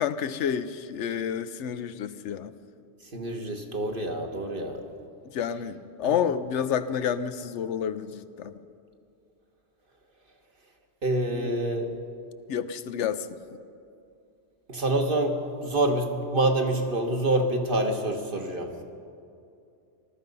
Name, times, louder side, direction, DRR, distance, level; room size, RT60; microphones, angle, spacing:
voice 1, 0.0-2.5 5.3-8.5 11.3-11.5 12.5-13.4, left 8 dB, 80° left, 12 dB, 0.9 m, -29 dB
voice 2, 3.1-4.8 6.0-6.2 11.0-11.9 14.7-18.7, right 1 dB, 50° right, 3 dB, 1.5 m, -26 dB
19.5 x 13.0 x 5.4 m, 2.5 s
omnidirectional pair, 1.2 m